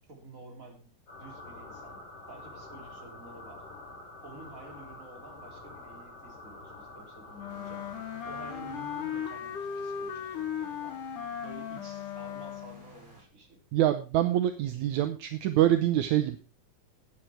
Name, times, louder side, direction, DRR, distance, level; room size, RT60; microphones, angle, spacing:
voice 1, 0.1-0.9 1.2-3.7 4.2-7.9 8.3-11.0 11.4-13.6, right 2 dB, 25° right, 1 dB, 3.6 m, -50 dB
sound 1, 1.1-9.3, left 2 dB, 65° left, 5.0 m, -47 dB
Wind instrument woodwind instrument, 7.4-12.9, left 8 dB, 85° left, 2.9 m, -37 dB
sound 2, 7.5-13.2, equal, 50° right, 7.4 m, -55 dB
voice 2, 13.7-16.4, right 12 dB, 75° right, 9 dB, 2.1 m, -25 dB
14.0 x 9.1 x 4.5 m, 0.32 s
omnidirectional pair, 3.6 m